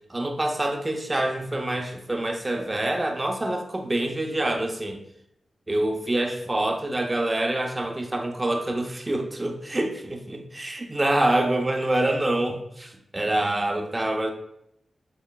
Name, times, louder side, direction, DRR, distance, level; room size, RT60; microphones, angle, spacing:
voice 1, 0.1-5.0 5.7-14.3, right 1 dB, 30° right, 4 dB, 0.6 m, -26 dB
5.1 x 3.0 x 2.3 m, 0.77 s
supercardioid pair, 40°, 0 cm